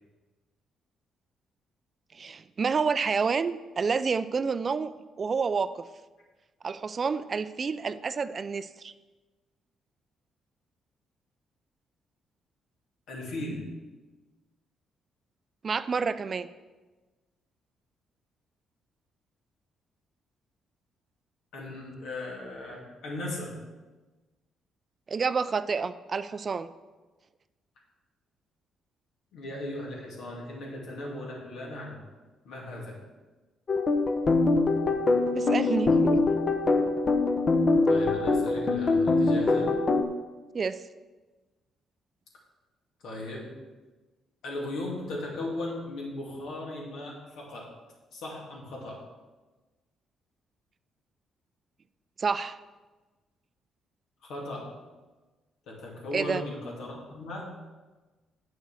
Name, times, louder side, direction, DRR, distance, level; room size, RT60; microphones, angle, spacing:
voice 1, 2.1-4.9 5.2-5.8 6.6-8.9 15.6-16.5 25.1-26.7 35.3-36.2 40.5-40.8 52.2-52.6 56.1-56.4, right 5 dB, 40° right, 13 dB, 0.4 m, -29 dB
voice 2, 13.1-13.8 21.5-23.6 29.3-32.0 32.4-33.0 37.9-39.8 43.0-43.6 44.4-47.7 48.1-49.1 54.2-54.7 55.7-57.5, left 1 dB, 80° left, -2 dB, 2.7 m, -37 dB
sound 1, 33.7-40.0, left 3 dB, 40° left, 0.9 m, -23 dB
8.2 x 6.5 x 6.4 m, 1.2 s
cardioid pair, 90°, 0 cm